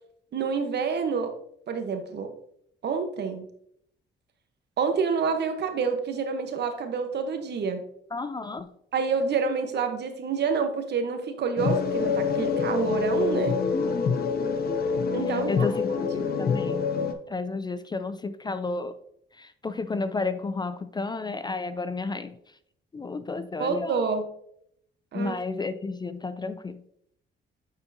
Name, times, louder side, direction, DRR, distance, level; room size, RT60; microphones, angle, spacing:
voice 1, 0.3-1.3 1.7-2.3 2.8-3.5 4.8-7.8 8.9-13.6 15.1-15.7 16.3-16.4 23.6-24.3 25.1-25.3, right 5 dB, 60° right, 7 dB, 1.0 m, -28 dB
voice 2, 8.1-8.7 13.7-14.1 15.3-16.9 17.3-19.0 19.3-22.4 22.9-24.0 25.1-26.8, left 3 dB, 20° left, 11 dB, 0.4 m, -32 dB
sound 1, 11.6-17.1, left 5 dB, 50° left, 0.7 m, -26 dB
9.4 x 4.4 x 2.7 m, 0.71 s
cardioid pair, 90°, 20 cm